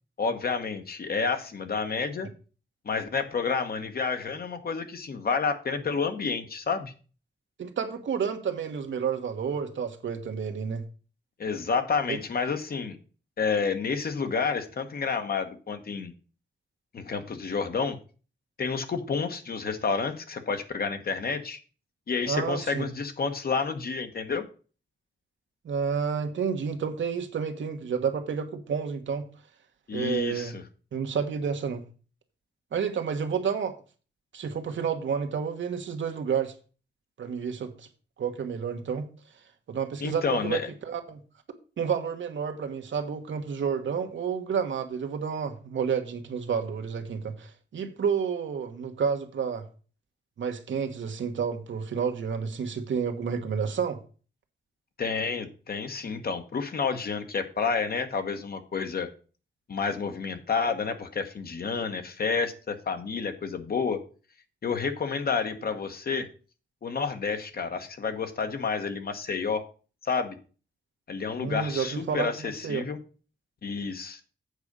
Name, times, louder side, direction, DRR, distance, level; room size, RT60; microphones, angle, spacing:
voice 1, 0.2-2.3 2.8-6.9 11.4-13.0 13.4-16.1 16.9-18.0 18.6-21.6 22.1-24.5 29.9-30.6 40.0-40.6 55.0-59.1 59.7-64.0 64.6-66.3 66.8-69.6 70.0-70.4 71.1-73.0 73.6-74.2, left 5 dB, 55° left, 1.2 m, -30 dB
voice 2, 7.6-10.8 12.1-12.2 22.3-22.9 25.6-29.2 29.9-30.6 30.9-31.8 32.7-33.8 34.3-36.5 37.2-37.9 38.2-39.1 39.7-41.2 41.8-49.7 50.4-54.0 71.4-72.8, right 6 dB, 90° right, 1.3 m, -30 dB
8.1 x 4.9 x 6.7 m
wide cardioid pair, 160°, 19 cm